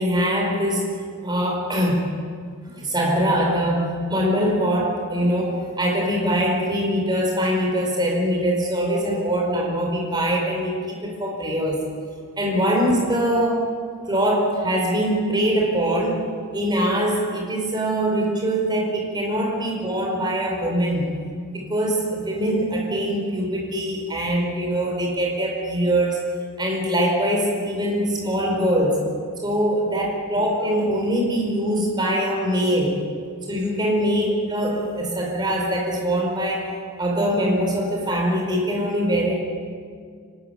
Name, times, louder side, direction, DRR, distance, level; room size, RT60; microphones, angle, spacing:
voice 1, 0.0-2.2 2.7-11.9 12.4-13.8 14.1-21.2 21.5-26.2 26.6-29.1 29.4-33.1 33.5-39.4, equal, 20° right, -1 dB, 4.7 m, -23 dB
25.0 x 13.0 x 9.2 m, 2.1 s
head